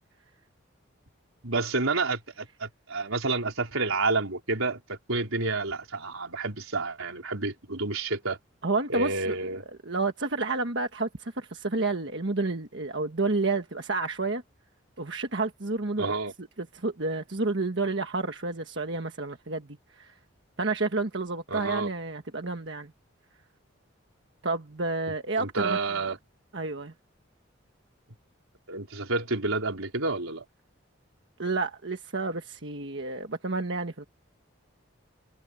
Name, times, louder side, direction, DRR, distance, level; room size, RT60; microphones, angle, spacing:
voice 1, 1.4-8.4 8.9-9.6 16.0-16.3 21.5-21.9 25.4-26.2 28.7-30.4, right 3 dB, 85° right, 4.9 m, -29 dB
voice 2, 8.6-14.4 15.0-16.1 16.4-20.2 20.6-22.9 24.4-25.8 26.5-26.9 31.4-34.0, right 3 dB, 60° right, 1.4 m, -30 dB
head